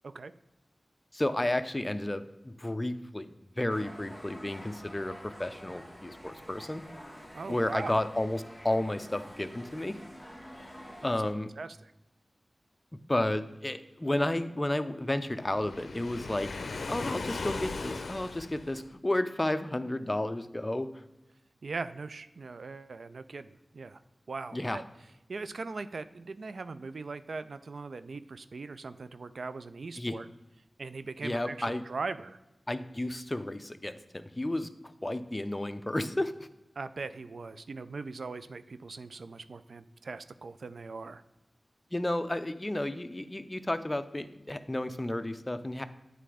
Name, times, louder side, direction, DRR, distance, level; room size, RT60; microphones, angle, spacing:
voice 1, 1.1-6.8 7.5-10.0 11.0-11.5 13.1-16.5 16.9-20.9 24.5-24.8 30.0-30.2 31.2-31.8 32.7-34.7 35.0-36.5 41.9-45.8, left 1 dB, 25° left, 11 dB, 0.5 m, -32 dB
sound 1, 3.7-11.3, equal, ahead, 1.4 m, -48 dB
voice 2, 7.3-7.9 11.0-11.1 11.6-11.9 21.6-24.0 24.3-24.8 25.3-30.3 30.8-32.4 36.8-41.2, right 4 dB, 80° right, 12 dB, 0.3 m, -40 dB
Waves surf, 15.4-18.9, left 3 dB, 90° left, 0.5 m, -38 dB
9.1 x 3.4 x 4.8 m, 0.95 s
wide cardioid pair, 50°, 0 cm